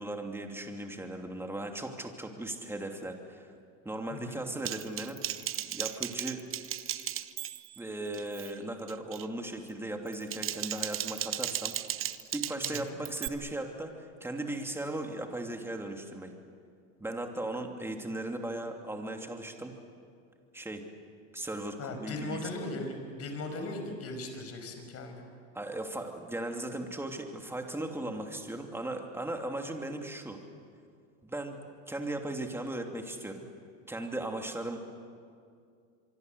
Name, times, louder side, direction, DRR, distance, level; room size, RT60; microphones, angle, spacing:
voice 1, 0.0-3.5 3.8-5.4 5.7-6.5 7.8-11.8 12.3-16.3 17.0-19.8 20.5-20.9 21.3-22.4 25.5-30.4 31.2-31.6 31.9-33.4 33.9-34.8, right 1 dB, 5° right, 3 dB, 2.9 m, -37 dB
voice 2, 4.1-4.4 12.6-13.0 21.8-25.3, left 2 dB, 40° left, 6 dB, 5.7 m, -38 dB
Typing, 4.6-7.8 8.1-8.5 8.9-9.3 10.1-13.3, right 12 dB, 35° right, 0.9 m, -36 dB
25.5 x 23.5 x 8.1 m, 2.2 s
supercardioid pair, 115°, 39 cm